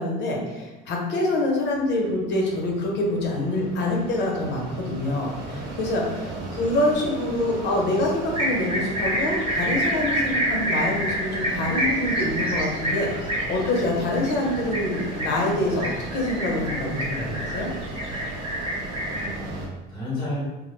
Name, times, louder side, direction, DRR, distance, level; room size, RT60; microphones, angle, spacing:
voice 1, 0.0-13.1 13.5-17.7, left 1 dB, 65° left, -1 dB, 0.7 m, -26 dB
Mechanisms, 1.7-19.7, right 2 dB, 70° right, 0.6 m, -36 dB
voice 2, 6.2-6.6 19.1-20.4, left 1 dB, 20° left, -6 dB, 1.0 m, -33 dB
sound 1, 8.3-19.3, right 1 dB, 30° right, 0.6 m, -27 dB
2.1 x 2.0 x 3.0 m, 1.2 s
cardioid pair, 125°, 20 cm